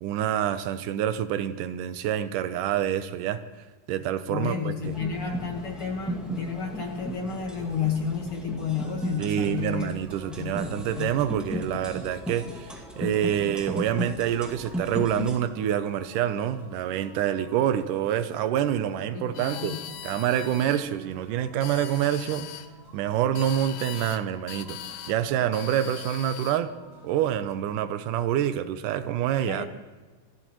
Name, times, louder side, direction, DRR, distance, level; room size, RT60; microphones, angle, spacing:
voice 1, 0.0-3.4 3.9-5.0 9.2-22.5 22.9-24.8 25.1-26.7 27.0-29.7, right 10 dB, 75° right, 11 dB, 2.1 m, -27 dB
voice 2, 4.3-9.9 10.3-11.2 19.1-19.8 29.5-29.6, left 6 dB, 50° left, 2 dB, 1.8 m, -31 dB
sound 1, 4.8-15.4, left 1 dB, ahead, 0.8 m, -35 dB
sound 2, 8.6-27.5, right 2 dB, 60° right, 5.2 m, -51 dB
sound 3, 19.3-20.8 21.5-22.7 23.4-24.2 24.5-25.2 25.5-26.6, left 12 dB, 75° left, 2.0 m, -40 dB
27.5 x 13.0 x 3.0 m, 1.3 s
omnidirectional pair, 4.0 m